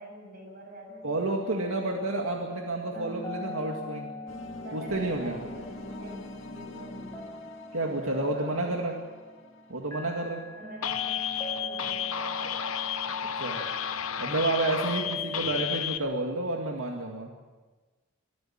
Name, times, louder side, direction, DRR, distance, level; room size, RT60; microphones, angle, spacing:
voice 1, 0.0-2.4 2.9-3.2 4.6-7.5 7.8-9.1 10.6-12.5 15.3-15.7, right 1 dB, 45° right, 1 dB, 7.1 m, -45 dB
sound 1, 0.9-15.4, left 1 dB, 15° left, 0.8 m, -42 dB
voice 2, 1.0-4.1 4.7-5.4 7.7-9.0 9.7-10.4 13.2-13.6 14.2-17.3, right 2 dB, 75° right, 1 dB, 2.1 m, -30 dB
sound 2, 4.3-11.1, left 2 dB, 65° left, 2.2 m, -45 dB
sound 3, 10.8-16.0, left 9 dB, 85° left, 1.0 m, -32 dB
24.5 x 13.0 x 8.9 m, 1.3 s
head